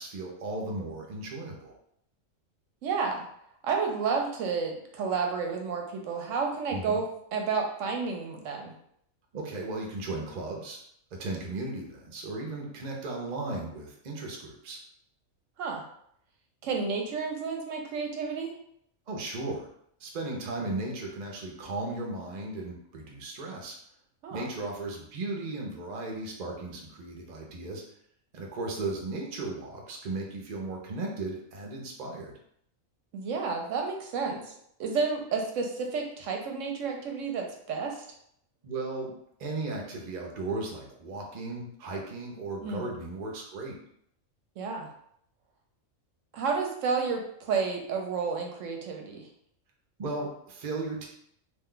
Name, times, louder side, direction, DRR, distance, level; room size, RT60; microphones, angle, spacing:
voice 1, 0.0-1.7 6.7-7.0 9.3-10.8 11.1-14.8 19.1-19.7 20.0-23.8 24.3-27.8 28.3-32.3 38.6-39.1 39.4-43.8 50.0-51.1, right 2 dB, 50° right, 0 dB, 0.5 m, -36 dB
voice 2, 2.8-3.3 3.6-7.1 7.3-8.7 15.6-15.8 16.6-18.5 24.2-24.5 33.1-34.5 34.8-38.0 42.6-42.9 44.6-44.9 46.3-49.3, right 5 dB, 70° right, 2 dB, 0.9 m, -31 dB
2.7 x 2.2 x 3.7 m, 0.70 s
omnidirectional pair, 1.4 m